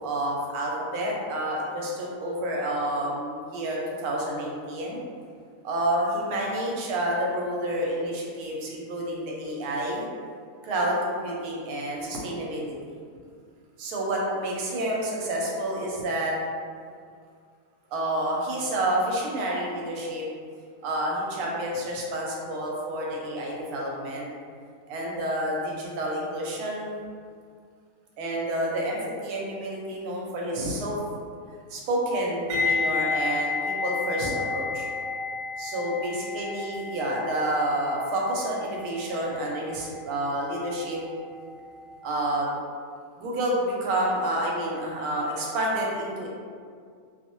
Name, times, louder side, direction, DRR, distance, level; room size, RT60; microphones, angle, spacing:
voice 1, 0.0-5.0 5.6-10.1 10.6-12.9 13.8-16.3 17.9-20.3 20.8-24.3 24.9-27.0 28.2-30.9 31.7-34.9 35.6-41.0 42.0-42.5 43.2-46.3, right 1 dB, 90° right, -3 dB, 1.1 m, -29 dB
sound 1, 32.5-41.5 41.7-42.0, left 4 dB, 65° right, 0.8 m, -31 dB
2.6 x 2.0 x 2.9 m, 2.1 s
omnidirectional pair, 1.6 m